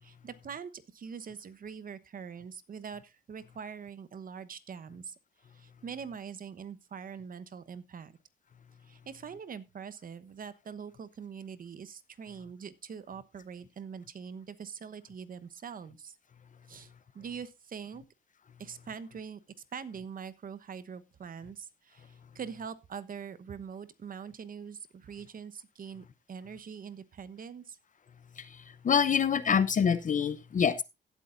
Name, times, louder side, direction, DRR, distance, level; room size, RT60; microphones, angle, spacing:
voice 1, 0.0-5.1 5.5-8.1 8.8-16.2 16.7-18.0 18.6-19.4 19.7-27.8, right 6 dB, 45° right, 1.1 m, -43 dB
voice 2, 28.4-30.8, left 7 dB, 40° left, 0.7 m, -26 dB
16.5 x 8.3 x 2.6 m
cardioid pair, 90°, 20 cm